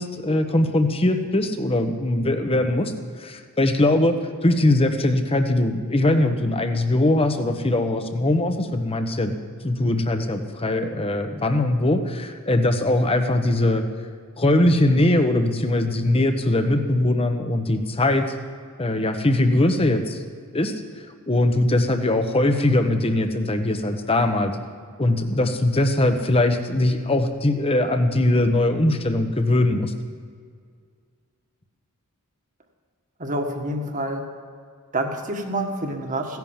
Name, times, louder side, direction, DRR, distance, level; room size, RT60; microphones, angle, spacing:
voice 1, 0.0-2.9 3.2-4.1 4.4-9.4 9.6-13.8 14.4-18.2 18.8-20.2 20.5-20.7 21.3-24.5 25.0-29.9, left 1 dB, 25° left, 7 dB, 1.1 m, -21 dB
voice 2, 33.2-34.3 34.9-36.4, right 1 dB, 35° right, 3 dB, 1.7 m, -27 dB
16.0 x 10.5 x 7.3 m, 2.1 s
head